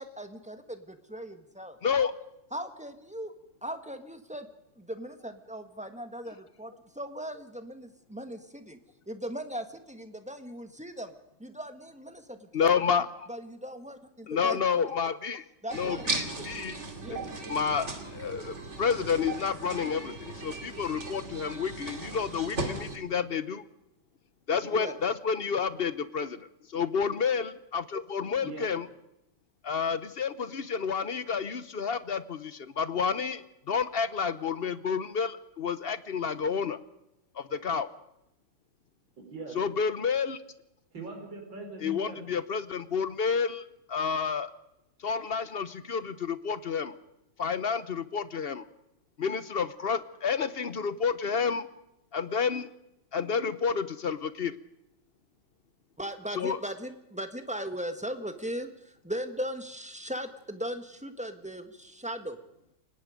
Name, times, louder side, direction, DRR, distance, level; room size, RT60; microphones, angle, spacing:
voice 1, 0.0-1.8 2.5-3.3 3.6-4.5 4.8-8.8 9.1-11.1 11.4-12.7 13.3-14.6 15.6-16.1 17.0-17.2 24.7-24.9 56.0-62.4, equal, 5° right, 7 dB, 1.5 m, -38 dB
voice 2, 1.8-2.1 12.5-13.3 14.3-15.4 15.7-16.8 17.5-23.7 24.5-28.9 29.6-36.8 37.4-37.9 39.5-40.4 41.8-44.5 45.0-46.9 47.4-48.6 49.2-51.7 52.1-52.7 53.1-54.5 56.4-56.6, left 6 dB, 45° left, 14 dB, 0.7 m, -30 dB
sound 1, 15.7-23.0, right 3 dB, 35° right, 2.7 m, -37 dB
voice 3, 28.4-28.7 39.2-39.6 40.9-42.2, right 3 dB, 75° right, 1 dB, 5.6 m, -41 dB
29.0 x 18.0 x 5.2 m, 0.84 s
omnidirectional pair, 2.1 m